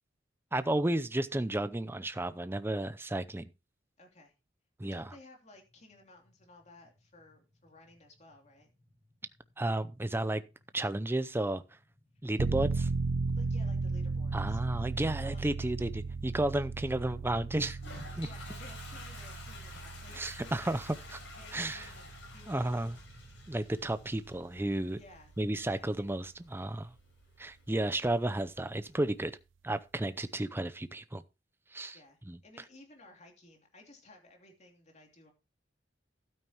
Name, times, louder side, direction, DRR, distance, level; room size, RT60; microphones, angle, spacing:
voice 1, 0.5-3.5 4.8-5.1 9.6-10.4 10.7-11.6 12.2-12.9 14.3-17.8 18.2-18.3 20.2-20.9 21.5-21.9 22.5-23.0 23.5-25.0 25.4-26.9 27.4-29.3 29.6-31.2 31.7-32.0 32.3-32.4, right 1 dB, 10° right, 0.6 m, -32 dB
voice 2, 4.0-4.3 4.9-8.7 13.2-15.5 18.1-20.8 21.3-22.9 24.9-25.3 25.7-25.9 31.9-35.3, left 2 dB, 40° left, 3.0 m, -56 dB
sound 1, 5.5-24.3, left 1 dB, 30° right, 2.3 m, -62 dB
sound 2, 12.4-24.9 25.3-25.4, right 4 dB, 90° right, 0.5 m, -36 dB
Toilet flush, 17.7-29.1, left 3 dB, 80° left, 4.6 m, -52 dB
12.5 x 8.9 x 3.0 m
head